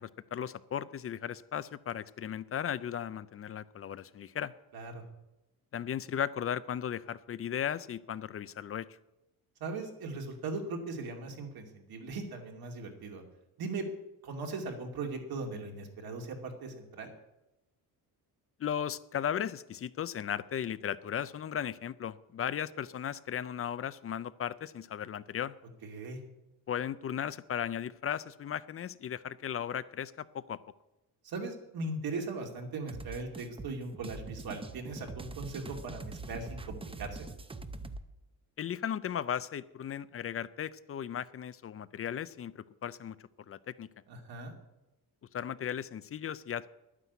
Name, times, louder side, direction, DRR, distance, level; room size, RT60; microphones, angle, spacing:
voice 1, 0.0-4.5 5.7-8.9 18.6-25.5 26.7-30.6 38.6-43.2 43.5-43.9 45.3-46.7, left 9 dB, 35° left, 17 dB, 0.5 m, -36 dB
voice 2, 9.6-13.2 13.6-13.9 14.2-17.1 25.8-26.2 31.2-37.3 44.1-44.6, right 3 dB, 65° right, 2 dB, 2.7 m, -39 dB
sound 1, 32.9-38.0, right 3 dB, 15° right, 0.6 m, -43 dB
11.0 x 9.8 x 8.2 m, 0.96 s
cardioid pair, 135°, 39 cm